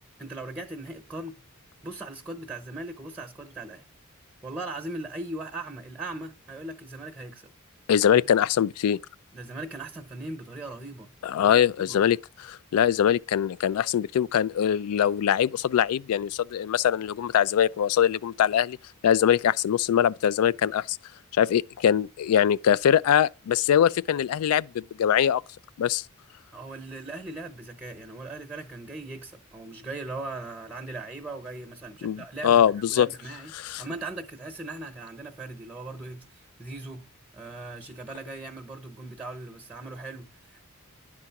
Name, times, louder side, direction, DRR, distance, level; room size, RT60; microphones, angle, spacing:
voice 1, 0.2-1.4 1.8-3.8 4.4-7.5 8.1-8.3 9.3-12.0 26.5-33.5 33.8-37.1 37.3-40.6, right 2 dB, 5° right, 0.9 m, -39 dB
voice 2, 7.9-9.0 11.2-18.8 19.0-21.0 21.3-25.4 25.8-26.0 32.0-33.1 33.6-33.8, left 9 dB, 80° left, 0.3 m, -22 dB
11.0 x 3.7 x 5.8 m
head